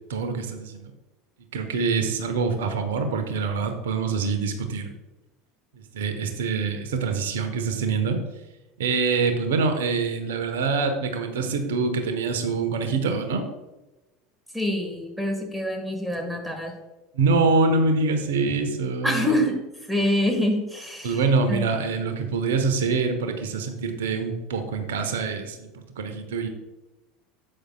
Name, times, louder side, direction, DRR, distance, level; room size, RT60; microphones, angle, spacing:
voice 1, 0.1-0.9 1.5-4.9 5.7-8.2 8.8-13.4 17.1-19.3 21.0-26.5, right 4 dB, 65° right, 7 dB, 1.1 m, -25 dB
voice 2, 14.5-16.7 19.0-19.6 19.9-21.2 21.5-21.6, left 1 dB, 5° right, 3 dB, 1.8 m, -25 dB
11.5 x 8.8 x 2.4 m, 1.1 s
figure-of-eight pair, 70°, 0 cm